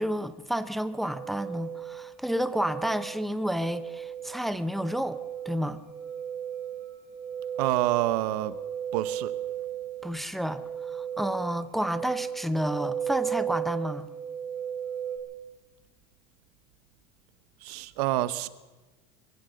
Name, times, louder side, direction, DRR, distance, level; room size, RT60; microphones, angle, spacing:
voice 1, 0.0-5.2 5.4-5.8 10.0-14.1, equal, ahead, 0.7 m, -30 dB
sound 1, 1.0-15.2, right 9 dB, 35° right, 5.7 m, -36 dB
voice 2, 7.6-8.6 8.9-9.4 17.6-18.5, right 15 dB, 80° right, 1.1 m, -27 dB
24.0 x 16.0 x 6.8 m
supercardioid pair, 140°, 20 cm